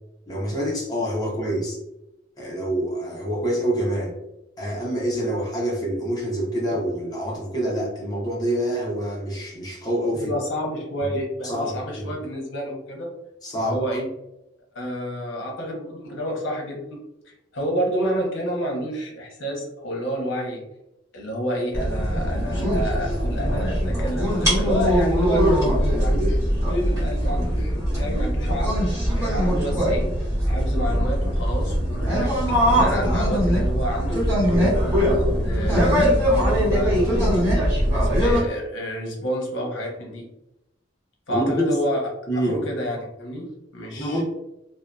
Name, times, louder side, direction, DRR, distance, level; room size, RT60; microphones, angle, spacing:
voice 1, 0.3-1.8 2.4-4.2 4.6-10.3 11.0-11.1 11.4-12.1 13.4-13.8 41.3-41.7 42.3-42.6 43.9-44.2, equal, 20° left, -3 dB, 0.7 m, -26 dB
voice 2, 10.1-13.1 13.6-14.0 14.7-17.0 17.3-20.6 21.1-25.4 26.0-26.4 26.7-28.7 29.2-30.1 30.5-32.3 32.7-34.6 35.0-37.5 37.9-40.3 41.3-42.0 42.4-43.5 43.7-44.2, equal, 75° left, 0 dB, 0.8 m, -29 dB
sound 1, 21.7-38.4, equal, 15° right, 1.2 m, -21 dB
2.7 x 2.2 x 2.2 m, 0.88 s
head